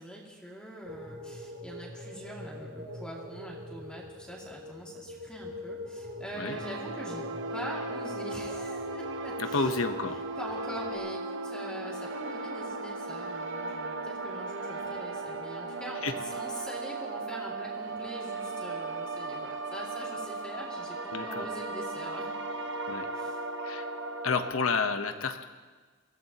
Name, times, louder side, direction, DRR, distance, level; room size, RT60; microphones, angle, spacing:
voice 1, 0.0-7.2 7.5-9.8 10.4-22.3 23.1-23.4, equal, 5° left, -3 dB, 2.5 m, -43 dB
sound 1, 0.9-11.0, left 1 dB, 80° right, 3.0 m, -44 dB
sound 2, 6.5-24.5, right 3 dB, 60° right, 1.0 m, -36 dB
voice 2, 9.4-10.2 16.0-16.1 21.1-21.5 22.9-23.1 23.6-23.9 24.2-25.4, left 4 dB, 85° left, 7 dB, 1.1 m, -30 dB
24.5 x 16.5 x 3.0 m, 1.4 s
head